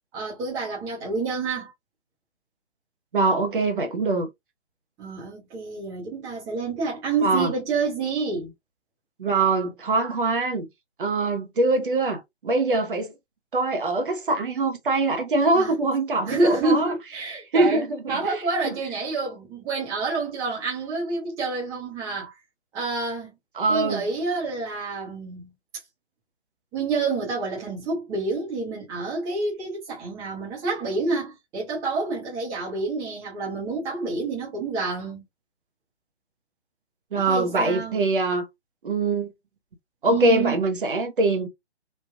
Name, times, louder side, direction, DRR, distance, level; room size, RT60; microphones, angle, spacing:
voice 1, 0.1-1.7 5.0-8.5 15.5-15.7 16.3-22.3 22.7-23.3 23.7-25.5 26.7-35.2 37.1-38.0 40.0-40.6, right 3 dB, 10° right, 0.8 m, -28 dB
voice 2, 3.1-4.3 7.2-7.5 9.2-10.7 11.0-13.1 13.5-16.9 17.5-18.7 23.6-24.1 37.1-38.5 38.8-39.3 40.0-41.5, right 2 dB, 50° right, 0.8 m, -23 dB
3.2 x 2.4 x 2.3 m
figure-of-eight pair, 145°, 34 cm